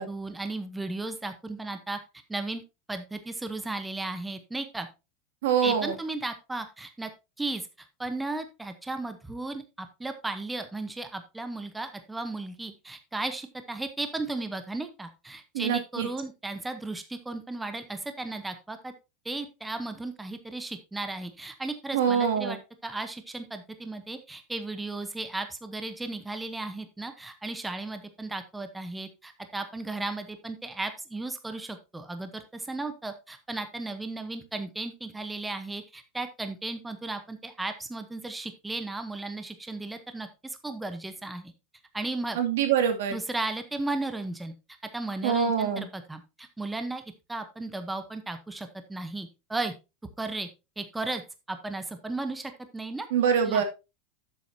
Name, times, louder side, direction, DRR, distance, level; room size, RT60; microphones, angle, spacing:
voice 1, 0.0-2.0 2.3-2.6 2.9-4.9 5.6-7.1 7.4-18.9 19.2-22.6 22.8-41.5 41.9-42.4 43.1-44.5 44.9-47.0 47.3-49.7 50.2-50.5 50.8-51.2 51.5-53.1 53.4-53.6, right 2 dB, 5° right, 8 dB, 0.9 m, -35 dB
voice 2, 5.4-5.9 15.5-16.1 21.9-22.6 42.3-43.2 45.2-45.9 53.1-53.6, right 7 dB, 85° right, 6 dB, 2.3 m, -24 dB
11.0 x 7.5 x 2.7 m, 0.26 s
supercardioid pair, 160°, 0 cm